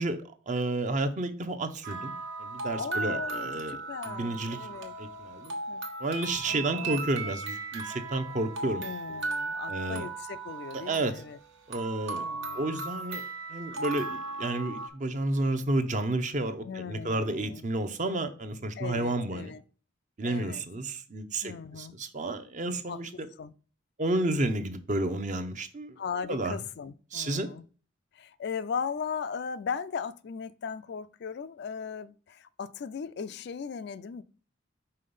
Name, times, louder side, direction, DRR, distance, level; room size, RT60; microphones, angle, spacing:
voice 1, 0.0-2.1 2.4-3.8 4.0-4.6 5.0-5.5 6.0-8.8 9.7-10.1 10.9-11.2 11.7-12.3 12.5-13.2 13.5-19.5 20.2-23.3 24.0-26.0 26.3-26.6 27.1-27.5, right 2 dB, 40° right, 0.6 m, -31 dB
sound 1, 1.8-14.9, right 3 dB, 75° right, 1.4 m, -37 dB
voice 2, 2.8-4.9 5.7-5.8 6.4-7.1 8.6-11.4 12.2-12.7 16.6-17.6 18.8-19.6 20.2-20.6 21.4-22.0 22.9-23.0 23.4-23.5 26.0-27.6 28.1-34.2, left 6 dB, 55° left, 0.4 m, -38 dB
5.6 x 3.3 x 5.4 m
head